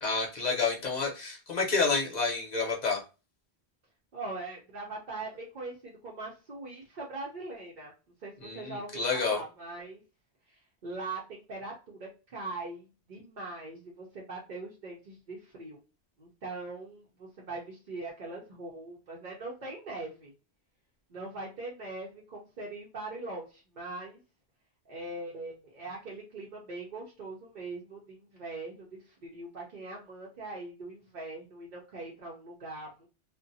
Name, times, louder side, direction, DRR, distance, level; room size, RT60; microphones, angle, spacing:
voice 1, 0.0-3.0 8.4-9.4, left 4 dB, 45° left, 0 dB, 0.9 m, -29 dB
voice 2, 4.1-7.9 8.2-10.0 10.8-15.8 16.2-20.3 21.1-24.2 24.9-33.1, right 2 dB, 50° right, -3 dB, 0.7 m, -41 dB
2.5 x 2.2 x 2.6 m, 0.31 s
omnidirectional pair, 1.1 m